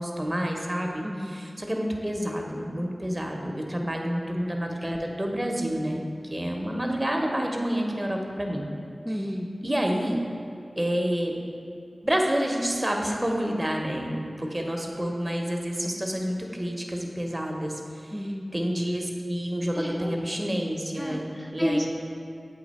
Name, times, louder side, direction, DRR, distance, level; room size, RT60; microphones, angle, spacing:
voice 1, 0.0-6.0 6.3-8.7 9.6-10.2 10.8-11.3 12.0-18.1 18.5-21.9, equal, 30° right, 1 dB, 0.8 m, -28 dB
voice 2, 1.0-1.4 9.0-9.5 18.1-18.5 19.7-20.2 21.0-21.9, equal, 5° left, -1 dB, 0.5 m, -31 dB
8.3 x 2.8 x 4.1 m, 2.5 s
cardioid pair, 40°, 0 cm